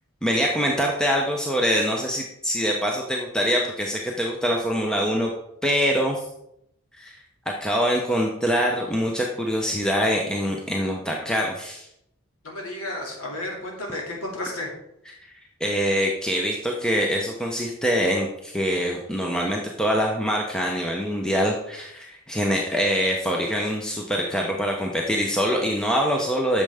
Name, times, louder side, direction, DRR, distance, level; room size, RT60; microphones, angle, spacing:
voice 1, 0.2-5.3 5.6-6.2 7.0-7.2 7.5-11.9 15.6-26.6, equal, 5° left, -1 dB, 0.6 m, -24 dB
voice 2, 12.4-14.7, left 1 dB, 90° left, -1 dB, 2.2 m, -32 dB
8.8 x 6.5 x 3.4 m, 0.78 s
head